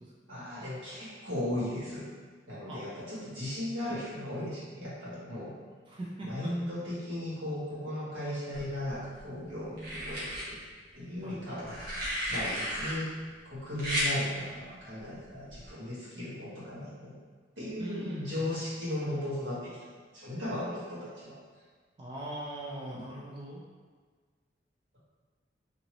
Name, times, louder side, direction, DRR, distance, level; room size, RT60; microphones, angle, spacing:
voice 1, 0.3-2.1 2.5-5.5 6.2-10.6 10.9-13.1 13.4-17.2 17.6-19.8 20.1-21.4 22.9-23.0, left 1 dB, 90° right, -10 dB, 1.5 m, -36 dB
voice 2, 5.9-6.5 11.2-11.4 17.8-18.5 22.0-23.6, right 1 dB, 30° right, -5 dB, 0.4 m, -41 dB
sound 1, 8.5-9.2 9.8-10.4 11.6-12.9 13.8-14.1 15.5-15.7, equal, 55° right, 1.0 m, -33 dB
2.9 x 2.6 x 2.9 m, 1.5 s
head